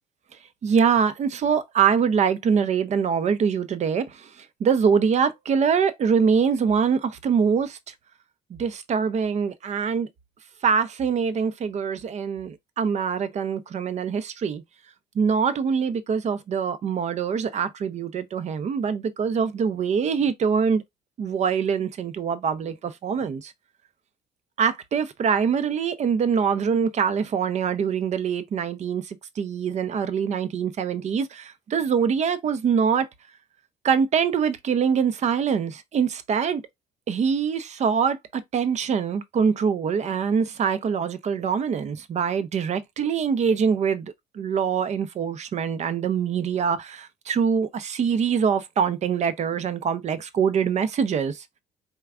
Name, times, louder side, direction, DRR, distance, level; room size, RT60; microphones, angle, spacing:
voice 1, 0.6-7.8 8.5-10.1 10.6-14.6 15.2-20.8 21.2-23.5 24.6-33.1 33.8-36.6 37.1-51.4, right 6 dB, 40° right, 0.6 m, -24 dB
4.5 x 3.4 x 2.4 m
cardioid pair, 110°, 17 cm